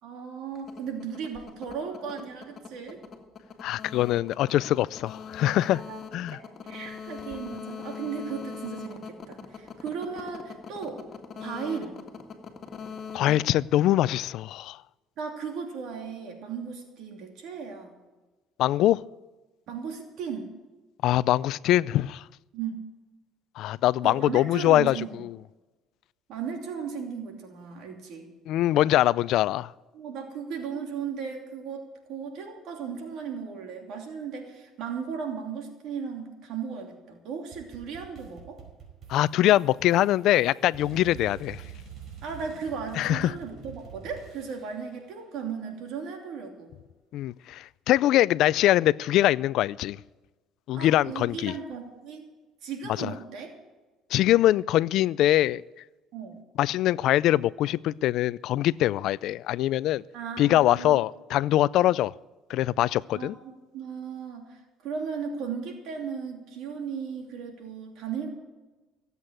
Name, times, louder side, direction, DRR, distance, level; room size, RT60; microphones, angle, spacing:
voice 1, 0.0-3.0 5.5-6.0 6.3-11.0 11.4-11.9 15.2-18.0 19.7-20.5 22.5-22.8 24.0-25.1 26.3-28.3 29.9-38.6 42.2-46.7 50.7-52.3 52.6-53.5 56.1-56.4 60.1-61.0 63.1-68.3, right 6 dB, 70° right, 2.8 m, -36 dB
sound 1, 0.5-14.4, left 6 dB, 40° left, 1.8 m, -42 dB
voice 2, 3.6-5.8 6.1-6.4 13.1-14.8 18.6-19.0 21.0-22.2 23.6-25.4 28.5-29.7 39.1-41.6 43.0-43.3 47.1-50.0 50.7-51.5 53.0-53.1 54.1-55.6 56.6-60.0 60.4-62.1 62.5-63.4, left 14 dB, 65° left, 0.4 m, -23 dB
sound 2, 37.5-44.9, right 7 dB, 45° right, 4.8 m, -46 dB
16.5 x 8.1 x 8.9 m
cardioid pair, 115°, 0 cm